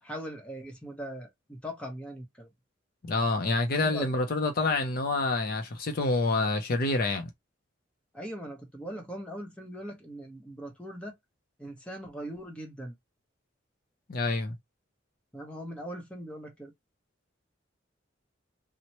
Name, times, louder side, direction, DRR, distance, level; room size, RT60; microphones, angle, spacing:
voice 1, 0.0-2.5 3.8-4.1 8.1-11.2 11.6-12.9 15.3-16.7, equal, 5° left, 0.9 m, -40 dB
voice 2, 3.0-7.3 14.1-14.6, left 2 dB, 50° left, 0.5 m, -27 dB
3.0 x 2.1 x 2.8 m
head